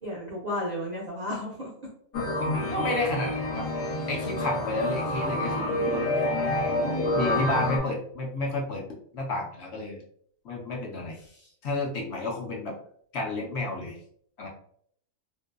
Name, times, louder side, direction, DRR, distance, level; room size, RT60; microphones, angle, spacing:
voice 1, 0.0-1.7 7.1-7.4 11.3-11.5, left 1 dB, 60° right, -4 dB, 0.4 m, -33 dB
sound 1, 2.1-7.8, left 1 dB, 85° left, 1.1 m, -28 dB
voice 2, 2.4-3.7 4.1-6.0 7.1-8.8 9.1-10.0 10.4-11.2 11.6-12.7 13.1-14.0 14.4-14.5, left 2 dB, 65° left, -1 dB, 0.8 m, -31 dB
2.6 x 2.1 x 2.3 m, 0.64 s
omnidirectional pair, 1.4 m